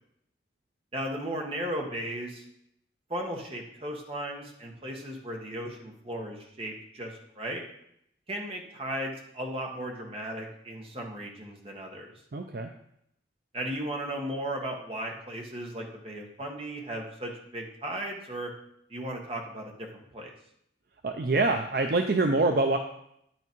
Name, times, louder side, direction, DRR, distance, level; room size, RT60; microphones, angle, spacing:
voice 1, 0.9-2.4 3.1-7.6 8.3-12.1 13.5-18.5 18.9-20.3, right 1 dB, 30° right, 1 dB, 1.3 m, -36 dB
voice 2, 12.3-12.7 21.0-22.8, right 2 dB, 55° right, 5 dB, 0.5 m, -25 dB
9.3 x 5.9 x 4.5 m, 0.74 s
head